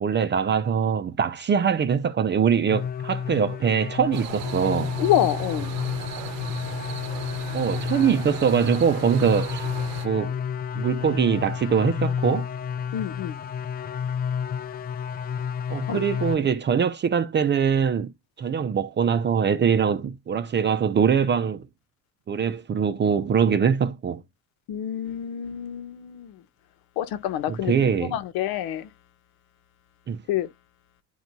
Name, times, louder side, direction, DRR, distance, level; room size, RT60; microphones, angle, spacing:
voice 1, 0.0-4.9 7.5-9.7 10.0-10.3 10.7-12.4 15.7-18.1 18.4-21.6 22.3-24.2 27.5-28.1 30.1-30.2, right 7 dB, 30° right, 0.7 m, -23 dB
Clarinet drone, 2.7-16.4, left 7 dB, 25° left, 0.3 m, -31 dB
sound 1, 4.1-10.1, right 12 dB, 70° right, 1.0 m, -37 dB
voice 2, 5.0-5.7 12.9-13.3 15.9-16.0 24.7-26.4 27.0-27.7 28.0-28.9 30.3-30.5, left 11 dB, 70° left, 1.3 m, -27 dB
11.5 x 4.5 x 2.7 m
cardioid pair, 130°, 38 cm